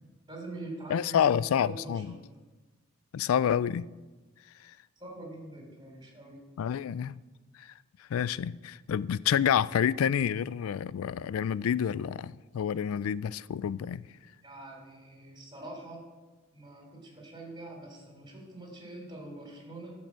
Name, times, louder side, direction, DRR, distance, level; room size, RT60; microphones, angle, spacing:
voice 1, 0.3-2.2 5.0-6.4 14.4-16.1 16.5-19.9, right 2 dB, 20° right, 3.5 m, -44 dB
voice 2, 0.9-2.2 3.1-3.9 6.6-7.2 7.6-7.7 8.1-14.1, left 8 dB, 85° left, 0.3 m, -28 dB
12.0 x 5.5 x 7.5 m
head